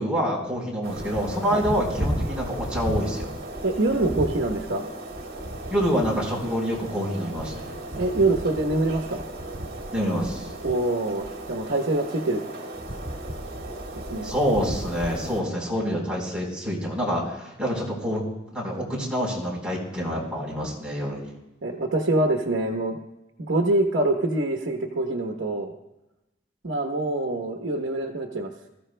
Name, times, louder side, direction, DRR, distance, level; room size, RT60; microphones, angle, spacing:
voice 1, 0.0-3.3 5.7-7.7 9.9-10.5 14.2-18.2 18.5-21.3, equal, 5° right, -4 dB, 4.1 m, -27 dB
sound 1, 0.8-15.4, right 1 dB, 55° right, 2.1 m, -34 dB
voice 2, 3.6-4.9 7.9-9.3 10.6-12.4 13.2-13.3 14.1-14.3 21.6-23.0 23.4-25.7 26.6-28.5, right 2 dB, 75° right, 2 dB, 1.0 m, -25 dB
21.5 x 14.0 x 2.2 m, 0.97 s
head